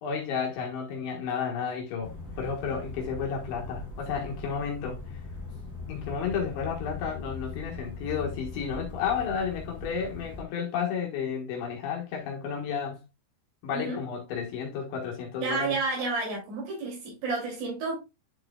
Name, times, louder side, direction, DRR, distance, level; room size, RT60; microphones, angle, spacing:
voice 1, 0.0-5.0 5.9-13.0 13.6-15.8, left 6 dB, 70° left, 3.4 m, -32 dB
sound 1, 2.0-10.4, left 3 dB, 10° left, 0.8 m, -40 dB
voice 2, 15.4-18.0, right 3 dB, 75° right, 5.1 m, -31 dB
11.0 x 4.7 x 2.3 m
omnidirectional pair, 5.7 m